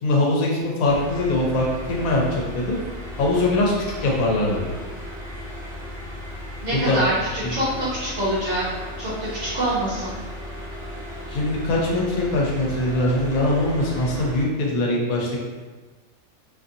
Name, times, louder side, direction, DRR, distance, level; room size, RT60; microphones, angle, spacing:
voice 1, 0.0-2.8 3.2-3.7 4.0-4.6 6.7-7.0 7.4-7.6 11.3-15.5, left 2 dB, 80° left, -2 dB, 1.1 m, -22 dB
sound 1, 0.8-14.4, left 1 dB, 5° left, 1.1 m, -36 dB
voice 2, 6.6-10.1, right 1 dB, 60° right, -8 dB, 1.0 m, -25 dB
2.7 x 2.5 x 2.6 m, 1.3 s
omnidirectional pair, 1.5 m